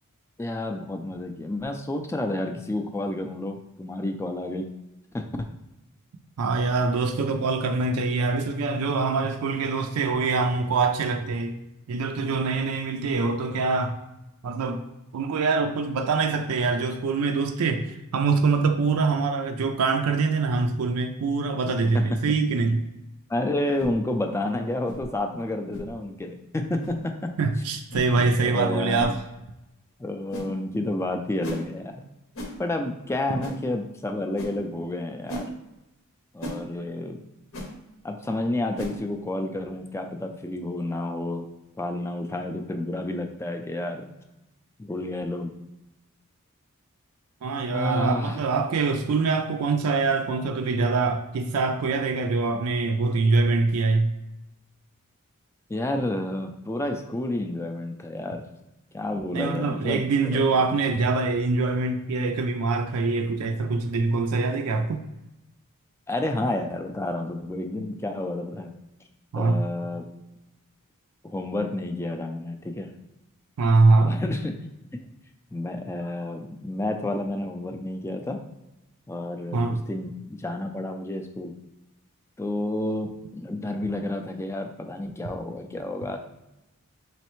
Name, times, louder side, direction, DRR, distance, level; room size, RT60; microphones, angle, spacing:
voice 1, 0.4-4.7 5.1-5.3 21.9-22.4 23.3-27.3 28.2-29.2 30.0-32.0 32.6-35.5 36.3-37.2 38.0-41.5 41.8-44.1 44.8-45.5 47.7-48.4 55.7-58.4 58.9-60.5 66.1-68.7 69.4-70.1 71.2-72.9 74.0-74.5 75.5-78.4 79.1-81.5 82.4-86.2, left 1 dB, 10° left, 5 dB, 0.3 m, -30 dB
voice 2, 6.4-11.6 11.9-14.0 14.4-14.8 15.1-17.9 18.1-22.9 27.4-29.2 47.4-54.1 59.3-65.0 69.3-69.6 73.6-74.2 79.5-79.9, right 3 dB, 80° right, 5 dB, 0.4 m, -24 dB
sound 1, 23.8-24.0 24.9-25.0 25.7-25.9 26.8-27.0 27.9-28.1 29.0-29.1 30.3-30.5 31.4-31.6 32.4-32.6 33.4-33.6 34.4-34.5 35.3-35.5 36.4-36.6 37.5-37.7 38.8-39.0, equal, 65° left, 0.8 m, -35 dB
4.0 x 3.2 x 3.0 m, 0.95 s
head